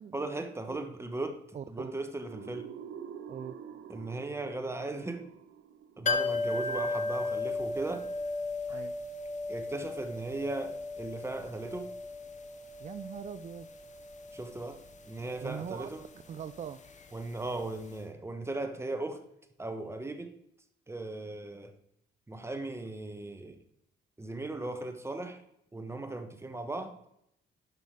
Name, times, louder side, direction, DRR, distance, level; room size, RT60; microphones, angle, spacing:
voice 1, 0.1-1.4 1.7-2.7 3.9-5.2 6.0-8.1 8.7-8.8 9.5-11.9 14.3-16.0 17.1-19.2 19.6-20.3 20.9-21.7 22.3-23.6 24.2-25.4 25.7-27.0, right 2 dB, 15° right, 7 dB, 1.2 m, -37 dB
voice 2, 1.5-1.9 3.3-3.5 8.7-8.9 12.8-13.7 15.4-15.9 16.3-16.8, right 8 dB, 35° right, 12 dB, 0.4 m, -41 dB
sound 1, 2.3-7.0, right 8 dB, 70° right, 0.7 m, -47 dB
sound 2, 6.1-17.7 17.9-18.0, left 3 dB, 40° left, 0.9 m, -36 dB
11.0 x 5.5 x 4.8 m, 0.76 s
cardioid pair, 90°, 20 cm